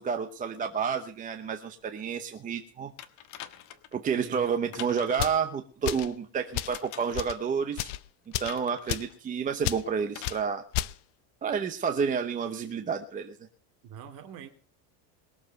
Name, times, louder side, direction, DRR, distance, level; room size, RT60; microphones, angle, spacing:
voice 1, 0.0-2.9 3.9-7.9 8.4-10.6 11.4-13.4, right 6 dB, 20° right, 6 dB, 0.8 m, -30 dB
sound 1, 3.0-4.0 4.7-5.4 6.7-7.3 8.5-8.9 10.1-10.5 11.5-11.6, left 11 dB, 40° left, 1.4 m, -44 dB
voice 2, 4.1-4.7 13.8-14.5, right 9 dB, 45° right, 6 dB, 2.8 m, -45 dB
sound 2, 5.1-5.4 5.8-6.1 6.5-6.8 7.1-7.4 7.7-8.0 8.3-8.6 8.9-9.1 9.6-9.8 10.2-10.4 10.7-10.9, left 15 dB, 60° left, 0.9 m, -31 dB
21.5 x 7.4 x 6.6 m, 0.43 s
cardioid pair, 170°, 46 cm